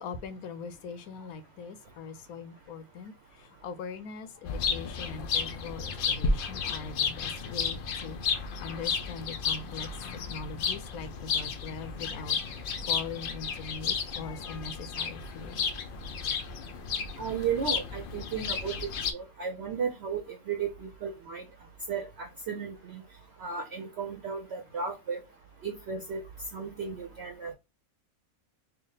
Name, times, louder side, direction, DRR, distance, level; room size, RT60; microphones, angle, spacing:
voice 1, 0.0-15.7, left 5 dB, 90° left, 1.1 m, -42 dB
sound 1, 4.5-19.1, left 5 dB, 65° left, 0.5 m, -33 dB
voice 2, 17.2-21.5 21.9-23.0 23.4-25.2 25.6-26.2 26.5-27.5, right 6 dB, 55° right, 0.8 m, -34 dB
3.4 x 2.4 x 3.9 m
omnidirectional pair, 1.5 m